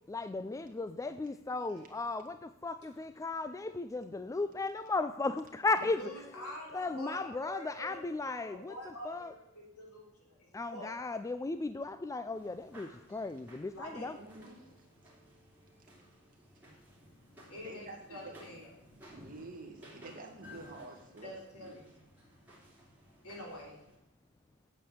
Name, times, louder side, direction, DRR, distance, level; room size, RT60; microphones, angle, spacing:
voice 1, 0.1-6.0 6.7-8.7 9.0-9.3 10.5-14.2, left 3 dB, 15° left, 12 dB, 0.3 m, -36 dB
voice 2, 5.8-10.9 13.7-14.1 17.5-18.7 21.2-21.8 23.2-23.8, left 1 dB, 85° left, -2 dB, 3.5 m, -46 dB
sound 1, 12.4-24.0, equal, 10° right, 3.1 m, -57 dB
voice 3, 13.9-14.6 17.6-18.4 19.1-21.7, right 3 dB, 40° right, 2 dB, 2.1 m, -49 dB
8.5 x 7.5 x 8.5 m, 0.90 s
head